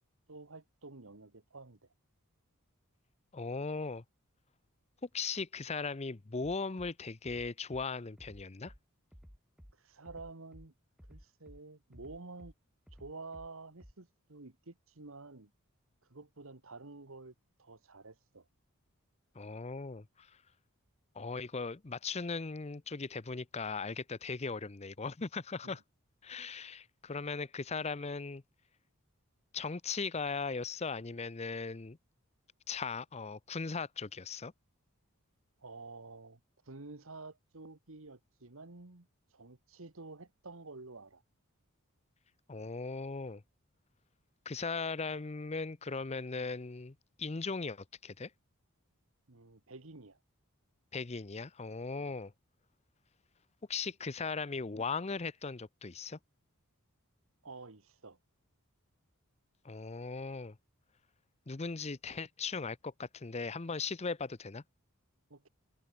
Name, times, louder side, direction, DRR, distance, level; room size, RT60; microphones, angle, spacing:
voice 1, 0.3-1.8 9.8-10.7 11.1-12.5 12.9-15.5 16.1-17.3 17.6-18.5 25.6-25.8 35.6-36.4 36.6-41.2 49.3-50.2 57.4-58.2 65.3-65.5, right 3 dB, 65° right, 1.6 m, -50 dB
voice 2, 3.3-4.0 5.1-8.7 19.3-20.3 21.2-25.8 26.2-28.4 29.5-32.0 32.7-34.5 42.5-43.4 44.5-48.3 50.9-52.3 53.7-56.2 59.6-60.6 61.5-64.6, left 4 dB, 30° left, 0.6 m, -38 dB
Bass drum, 6.4-6.9 7.2-7.8 8.2-8.8 9.1-9.7 10.0-10.7 11.0-11.6 11.9-12.5 12.9-13.5 13.8-13.9, equal, 5° right, 7.5 m, -54 dB
head